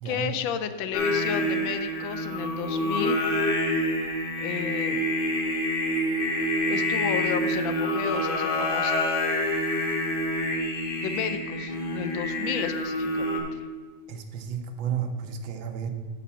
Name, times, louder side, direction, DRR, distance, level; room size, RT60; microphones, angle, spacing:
voice 1, 0.0-3.3 4.4-5.1 6.6-9.0 11.0-13.6, left 8 dB, 85° left, 10 dB, 1.3 m, -33 dB
Singing, 0.9-13.4, left 1 dB, 65° left, 1.8 m, -27 dB
voice 2, 14.1-15.9, right 7 dB, 85° right, 5 dB, 1.5 m, -32 dB
7.0 x 4.8 x 6.9 m, 1.5 s
omnidirectional pair, 2.1 m